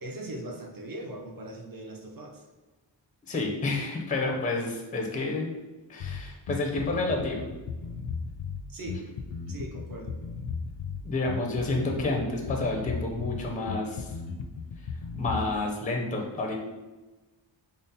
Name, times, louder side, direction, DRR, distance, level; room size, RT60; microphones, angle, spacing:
voice 1, 0.0-2.5 8.7-9.0 9.5-10.2, right 1 dB, 50° right, 2 dB, 0.6 m, -40 dB
voice 2, 3.3-5.5 5.9-7.4 11.0-14.1 15.1-16.6, left 2 dB, 20° left, 1 dB, 0.4 m, -29 dB
Bass guitar, 6.0-15.6, left 5 dB, 75° left, 0.5 m, -36 dB
3.8 x 2.0 x 3.9 m, 1.2 s
wide cardioid pair, 155°, 46 cm